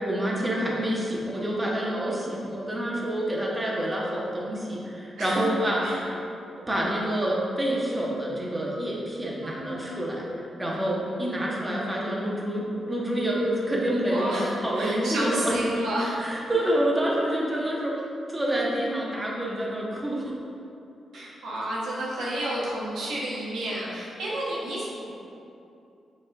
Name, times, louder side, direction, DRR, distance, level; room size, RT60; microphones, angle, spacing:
voice 1, 0.0-5.9 6.7-15.5 16.2-18.0 18.3-20.3 21.1-21.2, right 1 dB, 20° right, -4 dB, 1.4 m, -27 dB
voice 2, 9.4-10.0 14.1-16.2 17.3-17.5 21.1-25.1, right 1 dB, 80° right, -5 dB, 1.4 m, -31 dB
6.8 x 4.2 x 3.6 m, 2.7 s
cardioid pair, 60°, 0 cm